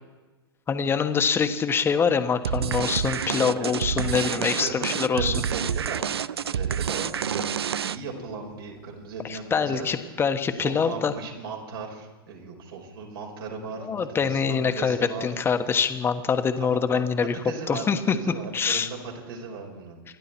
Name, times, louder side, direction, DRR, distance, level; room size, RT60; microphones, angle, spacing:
voice 1, 0.7-5.4 9.3-11.1 13.8-17.4 17.7-18.9, left 6 dB, 20° left, 8 dB, 1.3 m, -25 dB
sound 1, 2.4-8.2, right 8 dB, 90° right, 0.5 m, -28 dB
voice 2, 3.3-3.8 4.1-7.4 7.8-9.9 10.5-15.3 16.6-20.0, right 4 dB, 70° right, 0 dB, 5.3 m, -37 dB
27.0 x 11.5 x 4.6 m, 1.2 s
hypercardioid pair, 115°, 13 cm